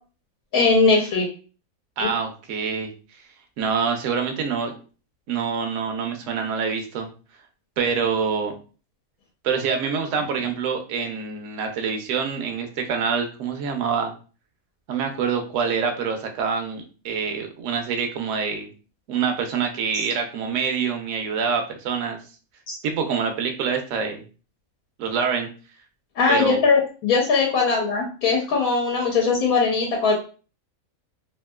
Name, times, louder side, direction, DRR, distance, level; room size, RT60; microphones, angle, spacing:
voice 1, 0.5-1.3 2.0-2.1 22.7-22.8 26.2-30.1, left 4 dB, 80° left, -2 dB, 1.2 m, -20 dB
voice 2, 2.0-2.9 3.6-4.8 5.3-7.1 7.8-8.5 9.4-14.1 14.9-18.7 19.1-22.2 22.8-24.2 25.0-25.5 26.3-26.6, right 6 dB, 70° right, 4 dB, 0.8 m, -26 dB
2.9 x 2.6 x 2.2 m, 0.37 s
omnidirectional pair, 1.5 m